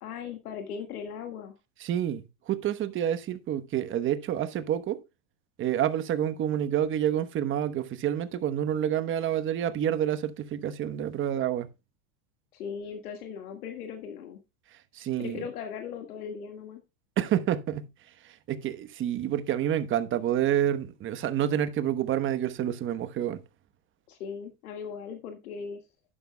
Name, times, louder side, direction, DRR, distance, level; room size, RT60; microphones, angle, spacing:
voice 1, 0.0-1.5 12.5-14.4 15.2-16.8 24.1-25.8, left 6 dB, 90° left, 1.8 m, -38 dB
voice 2, 1.8-5.0 5.6-11.7 14.9-15.4 17.2-17.9 18.2-23.4, right 10 dB, 25° right, 1.0 m, -28 dB
11.5 x 10.0 x 2.2 m
supercardioid pair, 135°, 44 cm